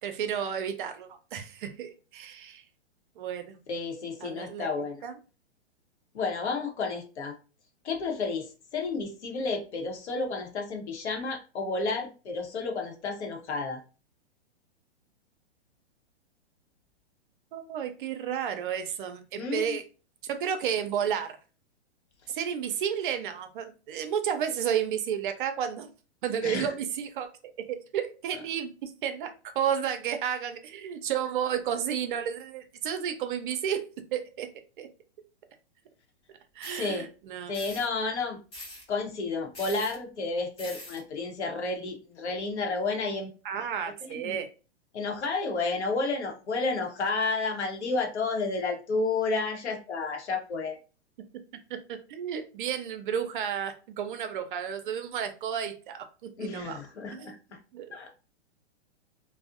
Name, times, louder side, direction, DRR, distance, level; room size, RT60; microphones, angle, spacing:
voice 1, 0.0-2.6 3.2-3.6 4.2-4.7 5.0-5.2 17.5-19.8 20.2-21.4 22.3-25.9 26.2-27.3 27.7-34.5 34.8-34.9 36.6-37.5 43.4-44.5 51.7-56.8 57.1-57.4 57.7-58.0, right 8 dB, 50° right, 8 dB, 0.5 m, -32 dB
voice 2, 3.7-5.0 6.1-7.3 7.8-13.8 19.4-19.8 26.4-26.7 36.7-37.1 37.5-38.4 38.9-43.3 44.1-44.4 44.9-50.8 56.4-57.4 57.9-58.1, left 3 dB, 85° left, 3 dB, 0.8 m, -31 dB
sound 1, 36.6-36.9 37.5-37.9 38.5-38.8 39.5-40.0 40.6-41.0, left 1 dB, 15° left, 0.7 m, -43 dB
2.5 x 2.0 x 2.4 m, 0.34 s
hypercardioid pair, 125°, 33 cm